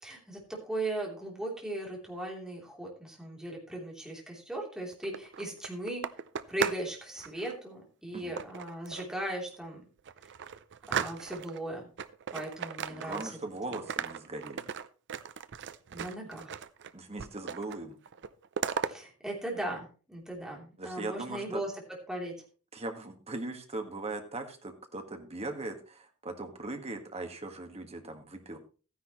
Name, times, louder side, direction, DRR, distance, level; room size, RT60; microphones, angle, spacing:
voice 1, 0.0-6.0 6.5-9.8 10.2-10.3 10.9-11.9 12.3-13.2 15.9-16.5 18.8-21.7 22.1-22.4, right 1 dB, 5° right, -2 dB, 3.3 m, -38 dB
sound 1, 4.9-6.9 7.2-7.6 8.4-9.2 9.6-9.7 10.1-11.6 12.0-13.5 13.7-16.9 17.2-17.8 18.1-18.9, right 7 dB, 55° right, 0.5 m, -37 dB
voice 2, 12.9-14.7 16.9-18.0 20.8-21.6 22.7-28.6, right 2 dB, 30° right, 5 dB, 1.6 m, -39 dB
14.5 x 10.0 x 3.1 m, 0.36 s
head